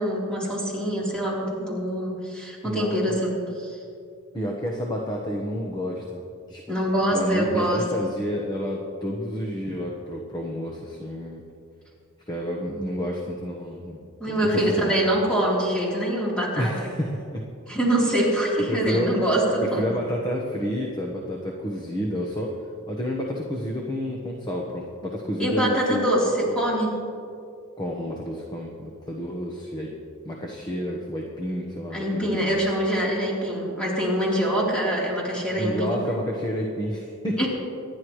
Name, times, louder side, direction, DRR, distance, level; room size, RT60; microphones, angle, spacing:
voice 1, 0.0-3.3 3.7-3.8 6.7-7.8 14.2-16.9 17.7-19.9 25.4-27.0 31.9-36.0 37.4-37.5, right 1 dB, 5° left, -6 dB, 3.7 m, -24 dB
voice 2, 2.6-3.3 4.3-6.2 6.5-6.6 7.1-11.4 12.3-14.0 14.3-14.9 16.6-17.4 18.7-19.1 19.7-22.6 22.9-26.0 27.8-29.9 30.2-32.7 35.5-37.4, equal, 20° left, -1 dB, 1.2 m, -30 dB
25.5 x 11.0 x 3.2 m, 2.5 s
head